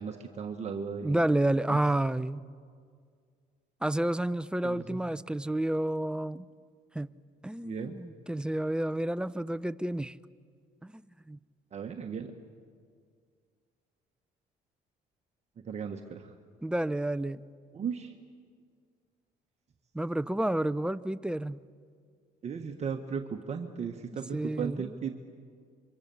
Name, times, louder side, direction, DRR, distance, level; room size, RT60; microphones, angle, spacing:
voice 1, 0.0-1.2 1.7-1.8 4.6-5.0 7.6-8.0 11.7-12.3 15.6-16.3 17.7-18.1 22.4-25.1, right 6 dB, 40° right, 1.4 m, -36 dB
voice 2, 1.0-2.4 3.8-6.5 6.9-7.2 7.4-10.2 10.8-11.0 11.3-11.4 16.6-17.4 19.9-21.6 24.3-25.0, right 1 dB, 5° right, 0.5 m, -30 dB
26.5 x 24.0 x 7.0 m
cardioid pair, 110°, 17 cm